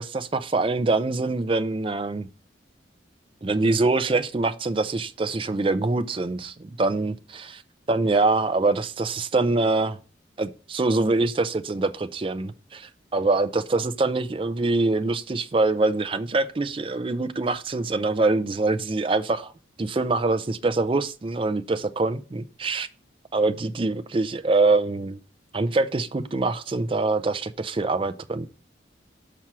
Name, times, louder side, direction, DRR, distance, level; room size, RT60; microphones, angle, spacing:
voice 1, 0.0-2.3 3.4-7.6 7.9-10.0 10.4-19.5 19.8-22.9 23.3-25.2 25.5-28.5, right 3 dB, 30° right, 0.4 m, -24 dB
6.0 x 4.4 x 5.8 m
head